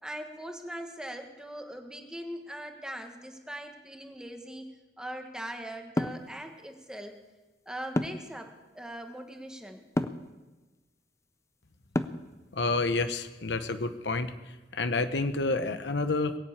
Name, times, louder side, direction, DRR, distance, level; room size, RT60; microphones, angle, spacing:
voice 1, 0.0-4.7 5.0-7.1 7.6-9.8, right 1 dB, 5° right, 4 dB, 1.5 m, -41 dB
sound 1, 6.0-6.3 8.0-8.3 10.0-10.3 11.9-12.3, left 1 dB, 15° left, 0.6 m, -28 dB
voice 2, 12.5-14.3 14.7-16.4, left 3 dB, 85° left, 10 dB, 1.0 m, -29 dB
21.5 x 7.4 x 8.6 m, 1.2 s
head